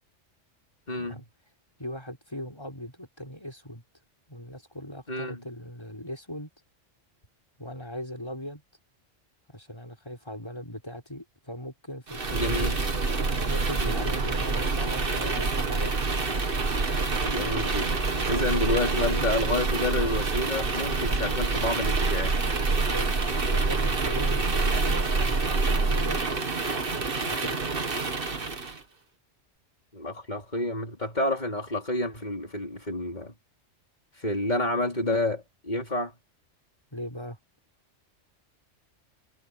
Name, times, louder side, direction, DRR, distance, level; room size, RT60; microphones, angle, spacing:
voice 1, 0.9-1.2 5.1-5.4 12.3-12.8 13.8-14.0 17.2-18.0 18.3-22.4 29.9-33.3 34.2-36.1, left 1 dB, 40° left, 4.4 m, -29 dB
voice 2, 1.8-3.8 4.3-6.5 7.6-8.6 9.5-12.7 13.5-15.9 17.3-17.5 18.1-19.2 22.8-23.1 23.4-26.3 27.2-27.8 36.9-37.4, equal, 20° left, 5.5 m, -39 dB
sound 1, 12.1-28.8, right 3 dB, 50° right, 1.9 m, -27 dB
omnidirectional pair, 1.2 m